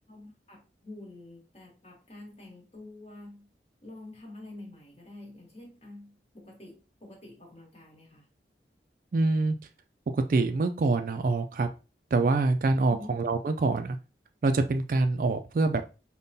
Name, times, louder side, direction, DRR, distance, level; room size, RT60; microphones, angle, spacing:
voice 1, 0.1-3.5 3.8-8.3 12.9-13.2, left 2 dB, 35° left, -1 dB, 1.4 m, -47 dB
voice 2, 9.1-9.5 10.1-11.7 12.1-14.0 14.4-15.8, right 3 dB, 50° right, 8 dB, 0.3 m, -25 dB
5.2 x 2.2 x 2.6 m, 0.32 s
head